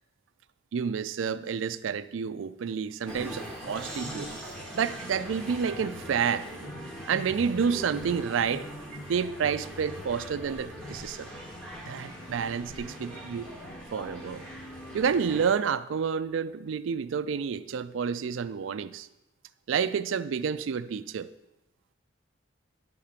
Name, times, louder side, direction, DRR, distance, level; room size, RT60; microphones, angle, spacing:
voice 1, 0.7-4.3 4.7-6.5 7.1-8.7 9.1-11.3 11.9-13.5 13.9-14.5 14.9-19.1 19.7-21.3, right 6 dB, 80° right, 15 dB, 0.4 m, -29 dB
sound 1, 3.1-15.5, equal, 5° left, 1.1 m, -41 dB
11.0 x 3.8 x 5.8 m, 0.92 s
head